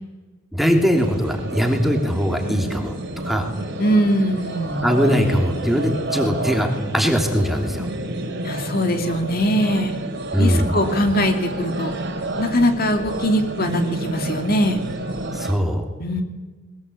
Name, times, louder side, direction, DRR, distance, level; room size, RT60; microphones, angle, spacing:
voice 1, 0.5-3.0 3.2-3.5 4.8-6.7 6.9-7.9 10.3-10.7 15.3-15.8, equal, ahead, 2 dB, 3.1 m, -20 dB
sound 1, 0.9-15.5, right 1 dB, 55° right, 3.8 m, -29 dB
voice 2, 3.8-4.9 8.4-10.0 10.4-11.9 12.4-14.8 16.0-16.2, equal, 45° left, 5 dB, 2.6 m, -21 dB
21.5 x 21.0 x 8.5 m, 1.3 s
head